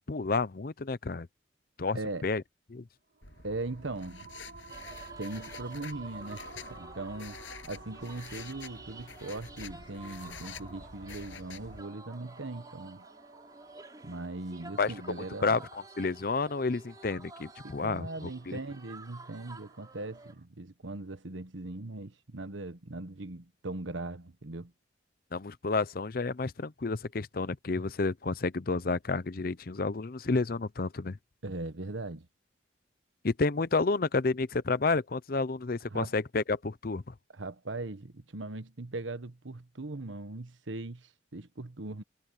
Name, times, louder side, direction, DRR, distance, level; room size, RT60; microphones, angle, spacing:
voice 1, 0.1-1.3 1.8-2.4 2.7-2.8 14.8-14.9 15.4-18.6 25.3-31.2 33.2-37.1, left 3 dB, 50° left, 0.6 m, -30 dB
voice 2, 1.9-2.3 3.4-4.3 5.2-7.4 7.6-13.0 14.0-15.6 17.6-24.7 31.4-32.3 35.9-36.1 37.3-42.0, right 2 dB, 85° right, 1.3 m, -39 dB
sound 1, 3.1-20.4, right 4 dB, 55° right, 3.3 m, -52 dB
sound 2, 3.2-11.8, left 5 dB, 85° left, 7.7 m, -48 dB
sound 3, 4.7-20.3, right 3 dB, 20° right, 4.0 m, -52 dB
head